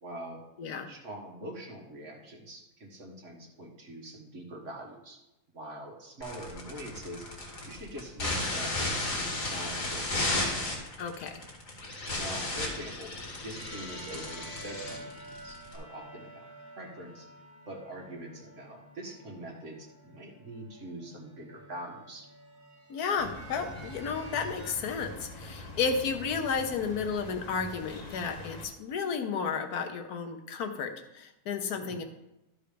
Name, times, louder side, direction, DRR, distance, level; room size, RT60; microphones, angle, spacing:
voice 1, 0.0-0.4 0.9-5.2 5.5-7.3 7.6-10.5 12.2-13.1 13.4-16.4 16.8-17.3 17.7-22.3 31.7-32.0, right 1 dB, 50° right, 0 dB, 1.9 m, -44 dB
voice 2, 0.6-0.9 11.0-11.3 22.9-32.0, left 5 dB, 80° left, 7 dB, 1.4 m, -32 dB
sound 1, 6.2-15.8, left 2 dB, 60° left, 2.3 m, -34 dB
sound 2, 13.5-24.7, right 1 dB, 15° left, 2.2 m, -50 dB
sound 3, 23.2-28.7, left 1 dB, 30° left, 1.1 m, -44 dB
12.0 x 4.6 x 5.1 m, 0.93 s
omnidirectional pair, 1.6 m